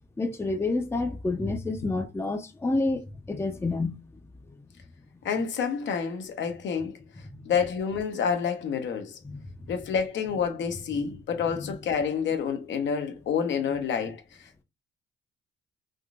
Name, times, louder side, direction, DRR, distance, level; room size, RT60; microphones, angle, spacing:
voice 1, 0.2-4.0 7.2-7.4 9.2-9.7 11.6-11.7, left 2 dB, 10° left, 0.5 m, -29 dB
voice 2, 5.2-7.0 7.4-9.2 9.7-14.2, left 6 dB, 65° left, 0.8 m, -28 dB
3.6 x 2.4 x 2.4 m
cardioid pair, 90°, 20 cm